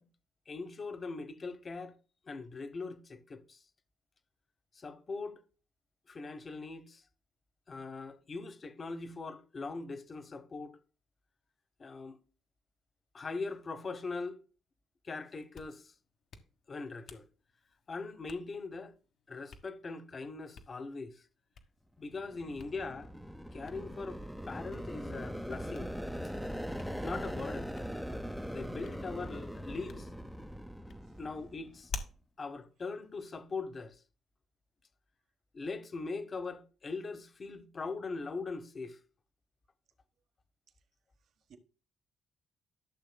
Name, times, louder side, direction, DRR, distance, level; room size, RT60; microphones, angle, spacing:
voice 1, 0.5-1.9 2.3-3.6 4.7-5.4 6.1-7.0 7.7-10.8 11.8-12.2 13.1-14.4 15.0-15.9 16.7-17.3 17.9-18.9 19.3-21.2 22.0-23.1 23.5-24.2 24.5-25.9 27.0-27.7 28.5-30.1 31.2-31.9 32.4-34.0 35.5-39.0, left 3 dB, 35° left, 1.0 m, -41 dB
Hands, 15.3-33.8, left 4 dB, 65° left, 1.3 m, -53 dB
sound 1, 22.1-31.9, equal, ahead, 0.6 m, -41 dB
voice 2, 41.2-41.6, right 7 dB, 65° right, 1.2 m, -62 dB
13.0 x 6.6 x 2.2 m
cardioid pair, 90°, 0 cm